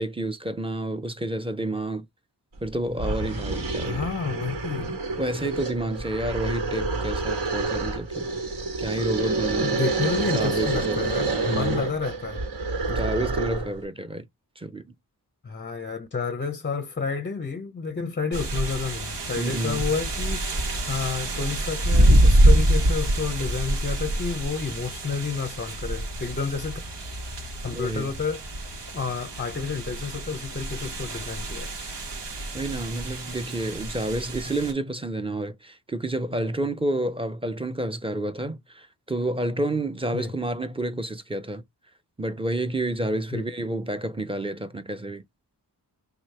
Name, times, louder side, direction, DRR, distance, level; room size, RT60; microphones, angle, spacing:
voice 1, 0.0-2.1 2.6-4.0 5.2-8.3 8.8-9.9 10.2-11.1 11.4-11.8 12.9-14.3 14.6-14.9 19.4-19.8 27.7-28.1 32.5-41.6 42.2-45.2, right 1 dB, 15° right, 0.7 m, -29 dB
sound 1, 2.6-2.7 3.0-13.8, right 3 dB, 70° right, 1.6 m, -28 dB
voice 2, 3.8-4.9 9.0-9.1 9.6-12.4 15.4-26.8 27.6-28.6 28.9-31.7 40.1-40.3 43.3-43.4, left 5 dB, 25° left, 0.5 m, -30 dB
sound 2, 18.3-34.7, right 1 dB, 85° right, 1.3 m, -25 dB
3.2 x 2.4 x 4.4 m
wide cardioid pair, 75°, 41 cm